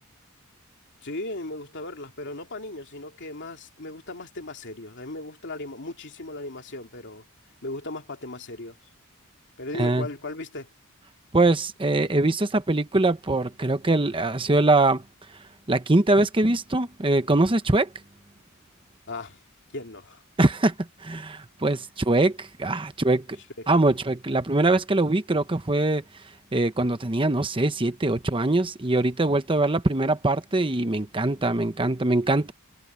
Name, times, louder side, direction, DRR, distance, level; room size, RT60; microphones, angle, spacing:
voice 1, 1.0-7.2 7.6-8.8 9.6-10.7 19.1-19.4 19.7-20.2 23.6-23.7, left 2 dB, 55° left, 2.9 m, -37 dB
voice 2, 9.7-10.1 11.3-15.0 15.7-17.9 20.4-20.7 21.0-23.2 23.7-26.0 26.5-32.5, right 2 dB, 25° right, 1.0 m, -22 dB
head